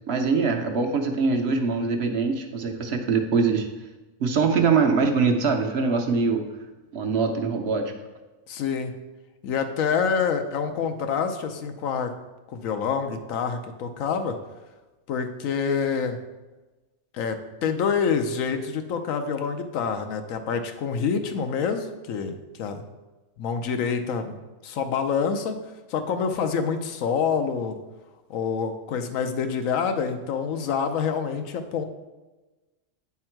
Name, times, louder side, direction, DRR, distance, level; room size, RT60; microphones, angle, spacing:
voice 1, 0.1-3.7 4.2-6.4 6.9-7.9, right 4 dB, 60° right, 4 dB, 0.9 m, -23 dB
voice 2, 8.5-8.9 9.4-12.1 12.5-14.4 15.1-16.2 17.1-22.8 23.4-24.4 24.6-25.6 25.9-27.8 28.3-31.8, left 6 dB, 90° left, 7 dB, 1.1 m, -27 dB
8.6 x 3.6 x 4.4 m, 1.2 s
omnidirectional pair, 1.3 m